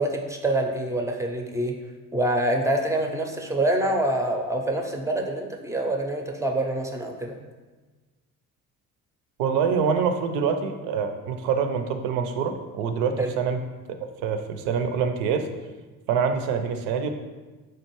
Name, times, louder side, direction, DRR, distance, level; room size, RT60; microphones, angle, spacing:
voice 1, 0.0-1.7 2.1-7.4 13.2-13.3, right 1 dB, 10° right, 2 dB, 0.4 m, -26 dB
voice 2, 9.4-13.6 14.2-15.5 16.1-17.1, right 6 dB, 75° right, 7 dB, 0.5 m, -25 dB
4.5 x 2.5 x 2.9 m, 1.3 s
hypercardioid pair, 60°, 42 cm